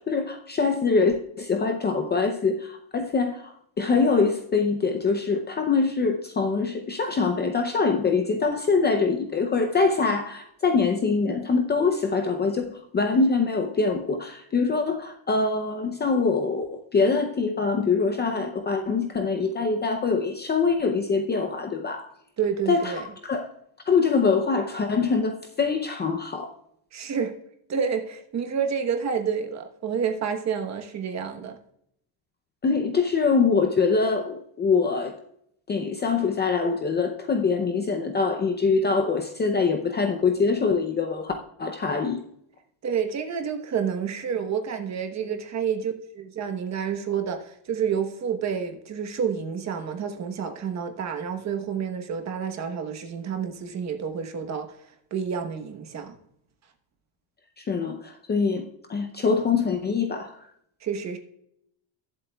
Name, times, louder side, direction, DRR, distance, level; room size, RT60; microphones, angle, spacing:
voice 1, 0.1-22.1 22.7-23.0 23.2-23.5 23.9-26.5 32.6-35.2 35.7-41.3 41.6-42.2 57.6-60.4, left 4 dB, 20° left, 0.6 m, -24 dB
voice 2, 22.4-23.1 26.9-27.3 27.7-31.6 42.8-54.8 55.1-56.2 60.8-61.2, right 7 dB, 35° right, 1.1 m, -29 dB
21.0 x 7.8 x 2.3 m
cardioid pair, 155°, 50 cm